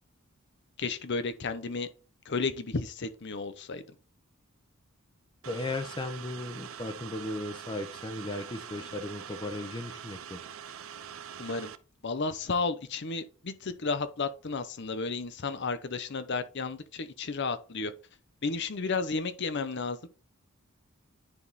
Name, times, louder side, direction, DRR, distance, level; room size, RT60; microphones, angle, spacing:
voice 1, 0.8-1.9 2.2-3.8 11.4-11.7 12.0-17.9 18.4-20.1, left 4 dB, 55° left, 0.8 m, -32 dB
sound 1, 5.4-11.8, right 8 dB, 75° right, 0.5 m, -44 dB
voice 2, 5.5-10.4, left 2 dB, 20° left, 0.7 m, -36 dB
10.0 x 3.6 x 4.0 m
head